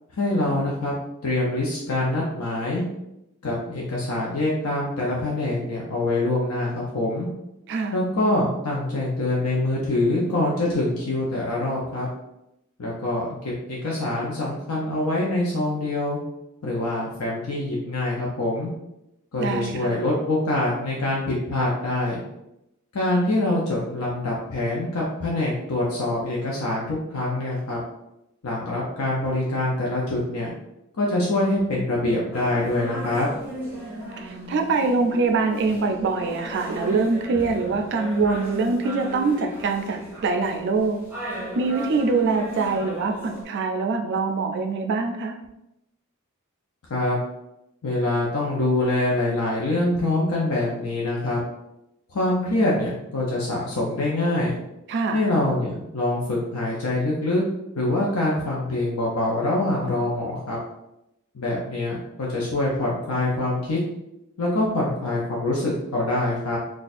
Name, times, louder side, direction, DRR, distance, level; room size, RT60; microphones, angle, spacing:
voice 1, 0.2-0.9 1.2-2.8 3.4-7.3 7.9-12.1 12.8-16.2 16.6-18.7 19.3-22.2 22.9-27.8 28.4-30.5 30.9-33.3 46.9-47.2 47.8-51.4 52.1-54.6 55.1-57.4 57.7-60.6 61.3-63.8 64.4-66.6, left 2 dB, 85° left, -4 dB, 0.6 m, -25 dB
voice 2, 19.4-20.0 34.2-41.0 41.5-45.3 54.9-55.2, right 4 dB, 55° right, 4 dB, 0.3 m, -24 dB
sound 1, 32.3-43.4, right 1 dB, 10° right, 0.8 m, -36 dB
2.5 x 2.3 x 4.1 m, 0.86 s
head